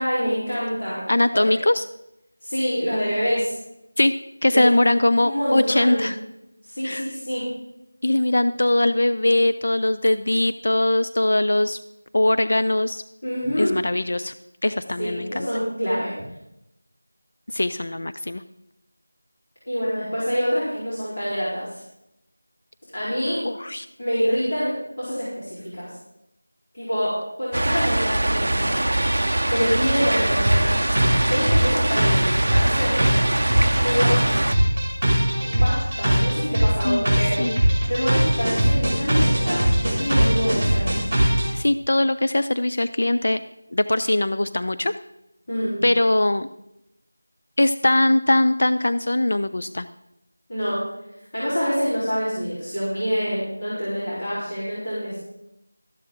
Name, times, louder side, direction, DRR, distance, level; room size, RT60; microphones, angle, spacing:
voice 1, 0.0-1.6 2.4-3.5 4.5-4.7 5.2-6.1 6.6-7.5 13.2-13.8 15.0-16.1 19.7-21.8 22.9-23.4 24.0-25.9 26.7-28.8 29.5-30.8 31.3-33.0 33.8-34.4 35.4-37.4 37.9-40.9 45.5-45.8 50.5-50.9 51.3-55.2, equal, 25° left, -12 dB, 4.2 m, -26 dB
voice 2, 1.1-1.8 4.0-4.2 4.4-6.1 6.8-7.1 8.0-11.8 12.1-13.0 13.6-14.3 14.6-15.5 17.5-18.4 23.4-23.9 36.8-37.1 37.4-37.6 41.5-43.4 43.7-44.9 45.8-46.5 47.6-49.9, left 1 dB, 50° left, 11 dB, 0.4 m, -21 dB
sound 1, 27.5-34.6, right 1 dB, 55° right, 0.6 m, -23 dB
sound 2, 28.9-41.5, right 1 dB, 10° right, 4.3 m, -21 dB
13.0 x 12.0 x 3.8 m, 0.86 s
figure-of-eight pair, 180°, 0 cm